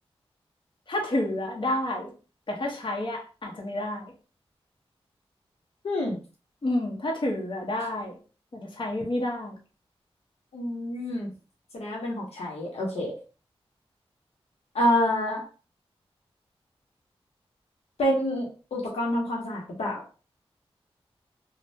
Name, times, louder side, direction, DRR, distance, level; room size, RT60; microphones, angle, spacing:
voice 1, 0.9-2.1 2.5-4.1 6.6-8.2 8.5-9.6, left 1 dB, 50° left, 0 dB, 0.8 m, -29 dB
voice 2, 5.8-6.2 10.5-11.3 11.7-13.1 14.7-15.4 18.0-20.0, equal, 85° left, -1 dB, 0.8 m, -27 dB
2.5 x 2.1 x 3.2 m, 0.35 s
cardioid pair, 50°, 11 cm